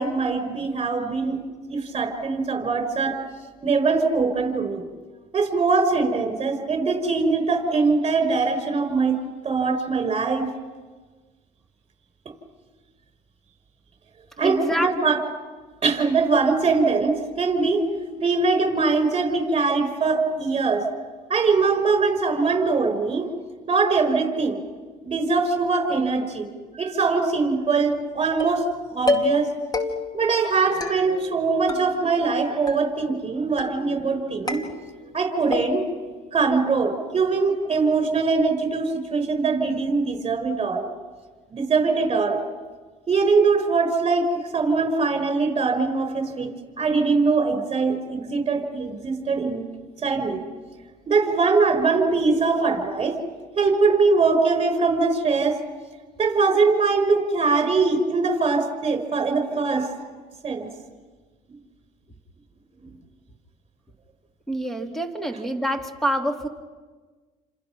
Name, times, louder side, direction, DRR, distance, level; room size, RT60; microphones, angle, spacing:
voice 1, 0.0-1.4 1.7-3.2 3.6-4.8 5.3-9.2 9.4-10.5 14.4-15.2 15.8-17.8 18.2-20.9 21.3-23.3 23.7-24.6 25.0-26.5 26.8-29.5 30.1-34.6 35.1-35.8 36.3-40.8 41.5-42.4 43.1-49.6 50.0-50.4 51.1-53.2 53.6-55.6 56.2-59.9 60.4-60.7, right 4 dB, 30° right, 7 dB, 5.4 m, -22 dB
voice 2, 14.4-14.9 64.5-66.5, right 1 dB, ahead, 4 dB, 2.8 m, -26 dB
sound 1, 28.4-28.7 29.1-29.5 29.7-30.3 30.8-31.4 31.7-32.4 32.7-33.2 33.6-34.1 34.5-35.2 35.5-36.1, left 3 dB, 20° left, 2.1 m, -29 dB
29.0 x 26.5 x 6.2 m, 1.4 s
cardioid pair, 95°, 17 cm